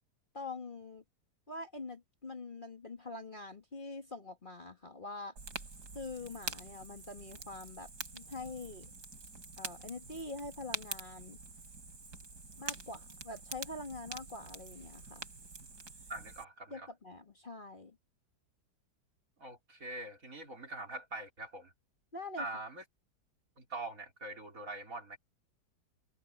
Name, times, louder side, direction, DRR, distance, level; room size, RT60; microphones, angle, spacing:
voice 1, 0.3-1.0 1.5-5.3 5.9-8.9 9.6-11.4 12.6-15.3 16.7-18.0 22.1-22.5, left 2 dB, 30° left, 2.0 m, -44 dB
Fire, 5.4-16.4, right 4 dB, 80° right, 4.3 m, -46 dB
voice 2, 16.1-16.9 19.4-21.7 22.4-22.8 23.6-25.2, right 2 dB, 55° right, 4.3 m, -43 dB
omnidirectional pair, 1.8 m